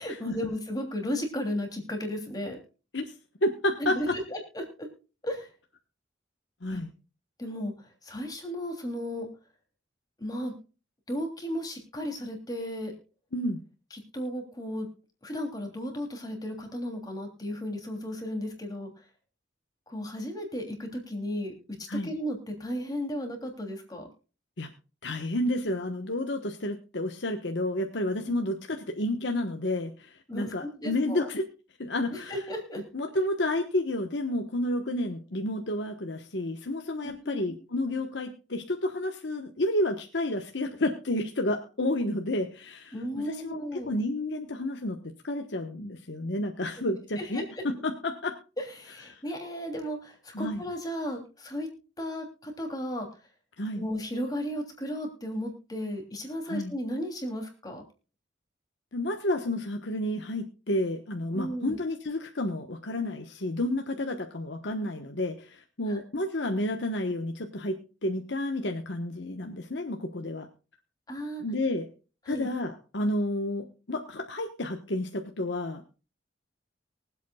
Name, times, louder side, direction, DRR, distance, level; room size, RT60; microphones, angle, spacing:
voice 1, 0.0-2.6 3.8-4.9 5.2-5.5 6.7-6.8 7.4-9.3 10.2-10.5 11.1-12.9 13.9-14.9 15.2-18.9 19.9-21.5 22.0-24.1 28.3-28.4 30.3-31.3 32.1-32.8 37.0-37.4 42.9-43.9 47.2-47.6 48.6-51.7 52.0-53.1 53.7-57.8 61.3-61.7 65.9-66.0 71.1-71.4 72.3-72.5, equal, 20° left, 2 dB, 3.1 m, -34 dB
voice 2, 3.4-4.1 6.6-6.9 13.3-13.6 21.9-22.1 24.6-24.7 25.0-31.4 31.8-32.3 32.9-42.9 43.2-48.3 49.1-49.2 50.3-50.6 53.6-53.8 56.5-56.7 58.9-67.8 68.0-70.5 71.4-71.9 72.3-76.0, left 1 dB, 65° left, 3 dB, 1.2 m, -30 dB
23.5 x 8.3 x 2.3 m, 0.34 s
head